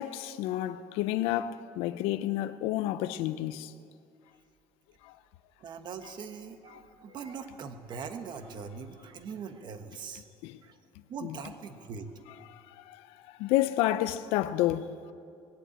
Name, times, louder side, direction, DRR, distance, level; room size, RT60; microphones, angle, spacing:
voice 1, 0.0-3.7 5.0-5.1 6.7-6.8 10.4-10.6 11.2-11.4 12.5-13.0 13.4-14.9, left 14 dB, 85° left, 0.5 m, -30 dB
voice 2, 5.6-10.2 10.6-10.8 11.1-12.1, right 6 dB, 50° right, 1.3 m, -41 dB
20.0 x 8.3 x 8.6 m
cardioid pair, 115°, 10 cm